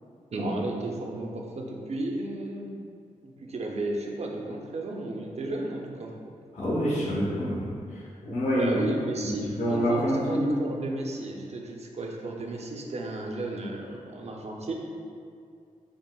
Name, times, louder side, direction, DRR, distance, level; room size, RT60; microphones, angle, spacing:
voice 1, 0.3-2.7 3.2-6.1 8.6-14.7, right 2 dB, 50° right, 0 dB, 0.5 m, -33 dB
voice 2, 6.5-7.7 8.2-8.8 9.6-10.5, equal, 55° left, -8 dB, 0.8 m, -26 dB
5.6 x 2.0 x 2.2 m, 2.3 s
cardioid pair, 65°, 14 cm